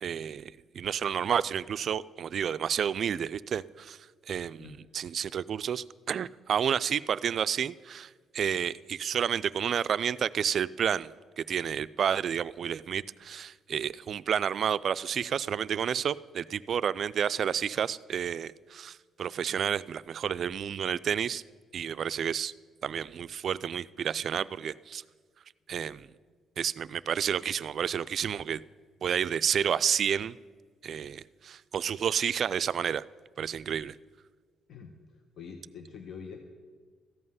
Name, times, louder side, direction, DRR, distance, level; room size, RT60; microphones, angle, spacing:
voice 1, 0.0-4.0 4.3-11.1 11.4-21.4 21.7-22.5 22.8-25.0 25.7-26.1 26.6-28.6 29.0-30.4 30.8-33.0 33.4-34.0, right 8 dB, 50° right, 16 dB, 0.3 m, -30 dB
voice 2, 34.7-36.4, left 6 dB, 55° left, 4 dB, 1.1 m, -45 dB
14.0 x 5.5 x 9.5 m, 1.5 s
cardioid pair, 120°, 0 cm